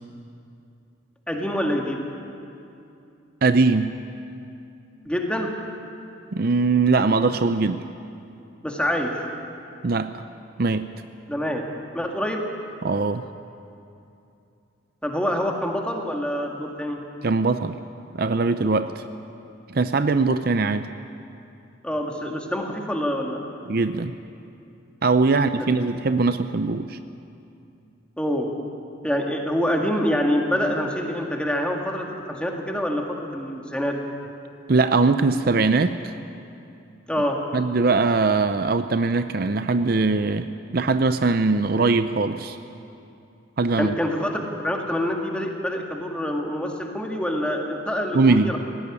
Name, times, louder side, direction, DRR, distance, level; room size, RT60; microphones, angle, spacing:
voice 1, 1.3-2.0 5.0-5.5 8.6-9.2 11.3-11.6 11.9-12.4 15.0-17.0 21.8-23.5 25.2-25.7 28.2-28.5 29.0-34.0 37.1-37.4 43.8-48.6, equal, 5° left, 1 dB, 2.0 m, -26 dB
voice 2, 3.4-3.9 6.3-7.8 9.8-10.1 10.6-10.9 12.8-13.3 17.2-17.8 18.1-19.0 19.7-20.9 23.7-24.2 25.0-27.0 34.7-36.1 37.5-42.6 43.6-43.9 48.1-48.6, right 3 dB, 50° right, 10 dB, 0.6 m, -21 dB
18.0 x 17.5 x 9.8 m, 2.7 s
head